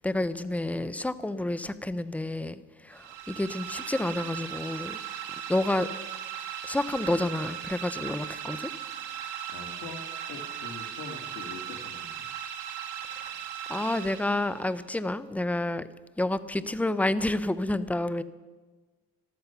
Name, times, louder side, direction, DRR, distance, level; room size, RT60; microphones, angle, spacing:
voice 1, 0.0-2.6 2.8-5.0 5.5-5.9 6.6-8.7 13.7-15.9 16.2-18.2, left 1 dB, 5° left, 14 dB, 0.6 m, -29 dB
sound 1, 2.9-14.8, right 9 dB, 90° right, 1.6 m, -38 dB
voice 2, 9.1-10.0 10.3-12.3, left 5 dB, 75° left, 0 dB, 2.1 m, -43 dB
14.0 x 13.0 x 5.7 m, 1.3 s
cardioid pair, 90°, 30 cm